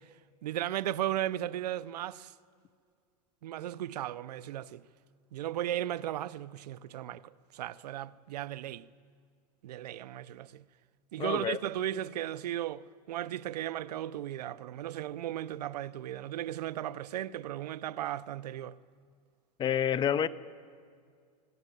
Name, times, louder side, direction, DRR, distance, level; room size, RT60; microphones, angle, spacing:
voice 1, 0.4-2.3 3.4-4.8 5.3-8.9 9.6-10.7 11.1-18.8, right 12 dB, 80° right, 0.7 m, -36 dB
voice 2, 11.2-11.6 19.6-20.3, left 9 dB, 25° left, 0.7 m, -28 dB
24.0 x 16.0 x 9.4 m
hypercardioid pair, 120°, 20 cm